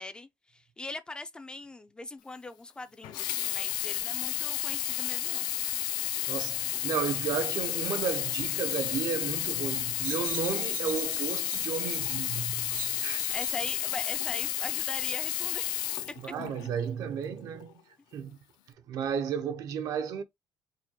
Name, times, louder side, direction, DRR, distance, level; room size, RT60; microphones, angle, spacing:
voice 1, 0.0-5.5 13.3-15.8 16.1-16.2, left 2 dB, 15° left, 0.3 m, -41 dB
Sink (filling or washing), 3.0-16.8 17.5-17.6, left 14 dB, 85° left, 0.4 m, -32 dB
voice 2, 6.0-13.4 16.2-17.7 18.1-18.4 18.9-20.2, right 7 dB, 60° right, 0.6 m, -33 dB
sound 1, 10.0-13.7 14.4-14.5, right 7 dB, 80° right, 1.5 m, -44 dB
4.8 x 2.2 x 2.9 m
cardioid pair, 140°, 7 cm